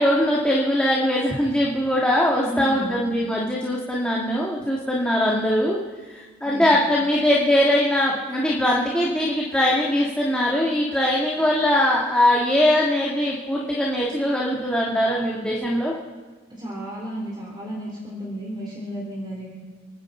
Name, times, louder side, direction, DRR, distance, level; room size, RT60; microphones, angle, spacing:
voice 1, 0.0-5.8 6.1-15.9, left 1 dB, 5° left, -4 dB, 1.6 m, -21 dB
voice 2, 2.4-3.0 6.4-6.8 16.5-19.5, equal, 25° right, -5 dB, 3.8 m, -33 dB
30.0 x 10.5 x 4.3 m, 1.4 s
head